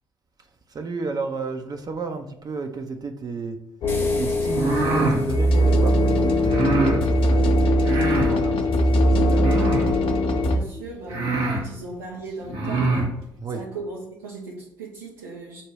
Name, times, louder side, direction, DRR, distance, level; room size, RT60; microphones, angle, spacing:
voice 1, 0.7-3.6 4.2-7.7 8.1-9.5 13.4-13.6, right 4 dB, 35° right, 5 dB, 0.5 m, -32 dB
sound 1, 3.8-10.6, equal, 55° left, 0.6 m, -20 dB
sound 2, 3.9-6.3, left 2 dB, 20° left, 0.8 m, -43 dB
voice 2, 4.0-4.3 10.4-13.2 13.5-15.6, right 3 dB, 85° right, -3 dB, 0.5 m, -38 dB
sound 3, 4.4-5.2 6.4-7.0 7.8-8.4 9.4-10.0 10.7-10.8 11.1-11.6 12.4-13.1, right 3 dB, 60° right, 1.0 m, -24 dB
5.4 x 2.1 x 3.3 m, 0.82 s
hypercardioid pair, 45°, 11 cm